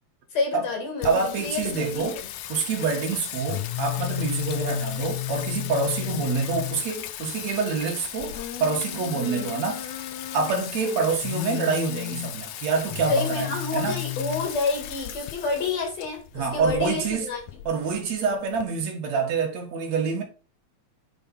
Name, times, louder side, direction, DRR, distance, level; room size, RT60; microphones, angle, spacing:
voice 1, 0.3-2.1 6.0-6.2 9.1-9.5 10.7-11.0 13.1-17.4, left 3 dB, 65° left, 3.0 m, -29 dB
Singing, 1.0-18.6, left 14 dB, 90° left, 2.2 m, -34 dB
voice 2, 1.0-2.2 2.5-9.9 10.3-14.0 16.3-17.3 17.7-20.2, right 5 dB, 70° right, 2.8 m, -26 dB
8.9 x 4.1 x 4.0 m
omnidirectional pair, 3.3 m